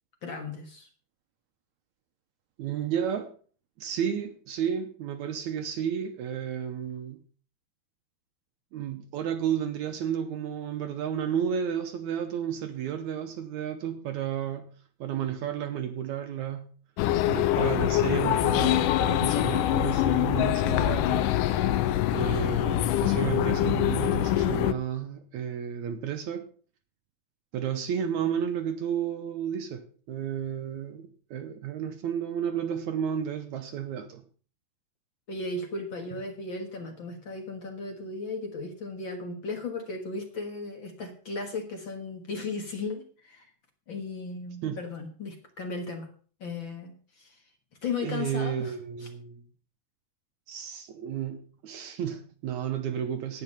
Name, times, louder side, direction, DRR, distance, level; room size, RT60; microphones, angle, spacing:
voice 1, 0.2-0.9 35.3-43.5 43.9-46.1 46.4-47.4 47.8-48.7, left 3 dB, 50° left, 1.6 m, -36 dB
voice 2, 2.6-3.3 3.8-7.2 8.7-14.7 15.0-16.7 17.3-21.3 22.1-26.5 27.5-34.2 44.6-44.8 48.0-49.4 50.5-53.4, right 8 dB, 75° right, 1.8 m, -32 dB
sound 1, 17.0-24.7, left 13 dB, 75° left, 2.1 m, -24 dB
10.5 x 9.3 x 5.4 m
omnidirectional pair, 4.1 m